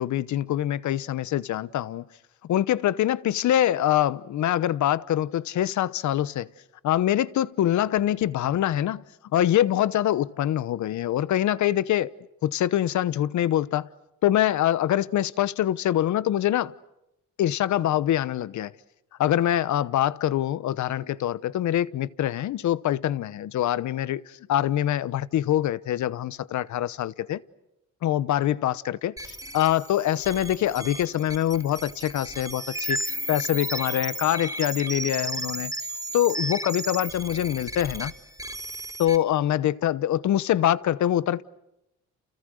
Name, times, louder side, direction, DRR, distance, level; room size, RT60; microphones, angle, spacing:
voice 1, 0.0-2.0 2.4-6.5 6.8-9.0 9.3-12.1 12.4-13.9 14.2-16.7 17.4-18.7 19.2-27.4 28.0-35.7 36.1-38.1 39.0-41.4, left 12 dB, 70° left, 1.0 m, -24 dB
sound 1, 29.2-39.2, right 1 dB, 10° right, 3.6 m, -34 dB
30.0 x 29.5 x 6.5 m
cardioid pair, 90°, 30 cm